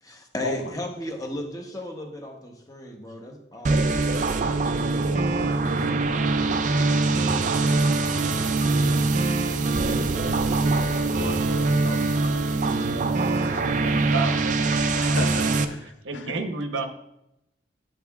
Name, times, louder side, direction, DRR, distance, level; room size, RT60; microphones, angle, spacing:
voice 1, 0.0-6.6 13.3-14.8, equal, 20° left, 2 dB, 0.9 m, -38 dB
sound 1, 3.6-15.6, right 3 dB, 40° right, 0.4 m, -23 dB
voice 2, 11.1-12.4 13.2-13.3 13.6-13.8 14.9-16.3, left 3 dB, 70° left, 7 dB, 0.7 m, -35 dB
voice 3, 13.4-15.6 16.0-16.9, right 4 dB, 80° right, 6 dB, 0.8 m, -33 dB
10.5 x 7.2 x 2.3 m, 0.83 s
head